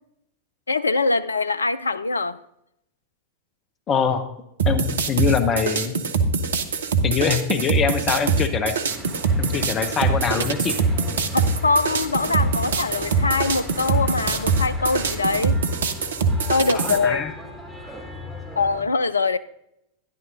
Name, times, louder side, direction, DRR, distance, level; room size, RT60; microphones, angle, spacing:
voice 1, 0.7-2.4 11.3-15.6 16.5-17.3 18.6-19.4, left 3 dB, 75° left, 0.3 m, -23 dB
voice 2, 3.9-4.3 4.7-5.9 7.0-8.8 9.4-10.8 16.7-17.3, left 6 dB, 30° left, 0.7 m, -23 dB
sound 1, 4.6-17.0, right 4 dB, 65° right, 0.7 m, -23 dB
Church bell / Traffic noise roadway noise, 8.9-18.8, left 1 dB, 5° right, 2.5 m, -37 dB
12.0 x 10.5 x 2.6 m
figure-of-eight pair, 90°, 0 cm